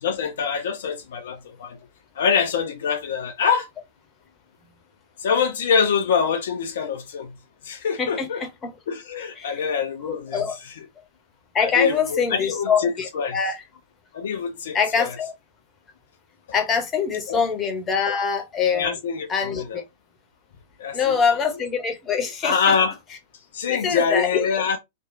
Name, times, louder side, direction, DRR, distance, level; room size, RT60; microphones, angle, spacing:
voice 1, 0.0-1.8 2.2-3.7 5.2-7.3 7.6-8.4 8.9-10.4 11.6-13.4 14.1-15.1 17.3-17.4 18.7-19.3 19.5-19.8 20.8-21.2 22.4-23.0 23.5-24.8, left 6 dB, 60° left, 0.4 m, -24 dB
voice 2, 8.0-8.7 9.4-9.6 10.0-10.6 11.5-13.6 14.7-15.3 16.5-19.0 19.3-19.8 20.9-22.7 23.7-24.4, left 6 dB, 25° left, 0.8 m, -24 dB
2.9 x 2.3 x 2.6 m
figure-of-eight pair, 95°, 0 cm